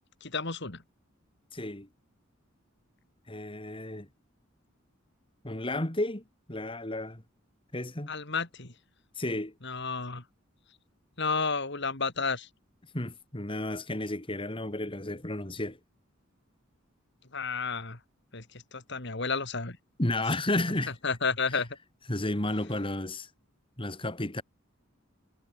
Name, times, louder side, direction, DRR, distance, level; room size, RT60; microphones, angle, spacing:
voice 1, 0.2-0.8 8.1-8.7 9.6-10.2 11.2-12.5 17.3-18.0 18.3-19.8 21.0-21.8, left 4 dB, 60° left, 3.1 m, -31 dB
voice 2, 1.5-1.9 3.3-4.1 5.4-7.2 7.7-8.1 9.2-9.5 12.9-15.8 20.0-20.9 22.1-23.3 23.8-24.4, left 1 dB, 25° left, 2.7 m, -32 dB
head